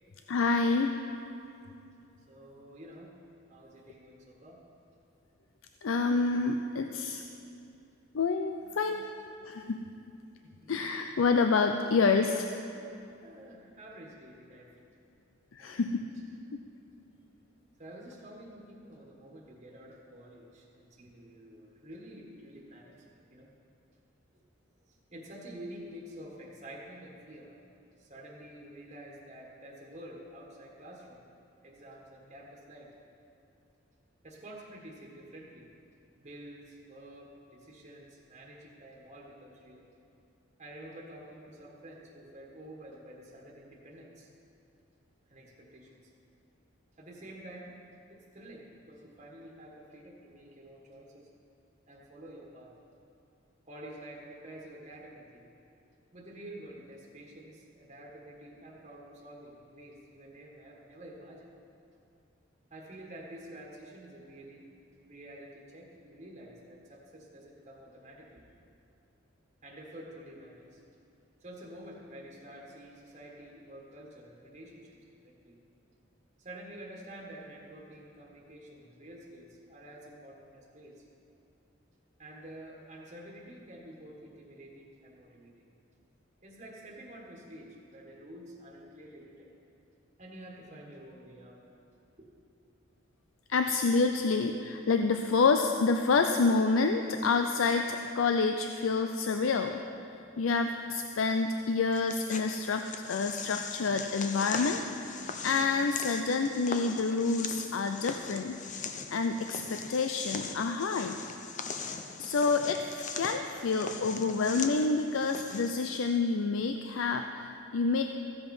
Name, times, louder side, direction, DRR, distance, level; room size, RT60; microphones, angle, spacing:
voice 1, 0.3-1.0 5.8-7.2 8.1-9.1 9.4-9.8 10.7-12.6 15.5-16.1 16.5-16.6 93.5-99.8 100.4-104.8 105.1-105.2 105.4-108.6 109.1-111.2 112.2-118.0, left 4 dB, 80° left, 6 dB, 0.5 m, -28 dB
voice 2, 2.3-3.1 3.5-4.6 10.4-10.7 13.2-14.7 15.6-16.0 17.8-23.5 25.1-27.5 28.0-31.2 31.6-32.9 34.2-35.7 36.2-39.9 40.6-44.3 45.3-46.1 47.0-47.7 48.1-51.3 51.9-52.7 53.7-55.5 56.1-61.5 62.7-64.6 65.1-68.5 69.6-70.8 71.4-75.0 75.2-75.6 76.4-81.0 82.2-85.7 86.4-89.5 90.2-91.6 92.2-92.3, right 1 dB, 35° right, -2 dB, 1.5 m, -49 dB
sound 1, 101.9-115.7, left 5 dB, 40° left, 0.7 m, -40 dB
15.0 x 8.0 x 5.4 m, 2.6 s
head